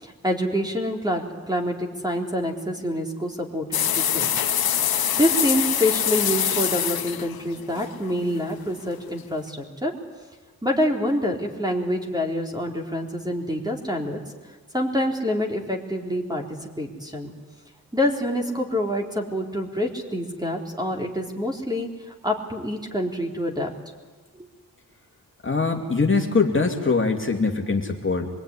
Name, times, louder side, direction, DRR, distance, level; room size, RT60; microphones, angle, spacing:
voice 1, 0.0-4.3 5.2-9.9 10.6-14.2 14.7-17.3 17.9-21.9 22.2-23.7 24.4-24.5, equal, 10° right, 1 dB, 3.9 m, -26 dB
sound 1, 3.7-8.7, left 9 dB, 80° left, 0.9 m, -24 dB
voice 2, 25.4-28.3, left 4 dB, 35° left, 1 dB, 2.5 m, -22 dB
25.5 x 21.0 x 9.9 m, 1.3 s
wide cardioid pair, 85°, 36 cm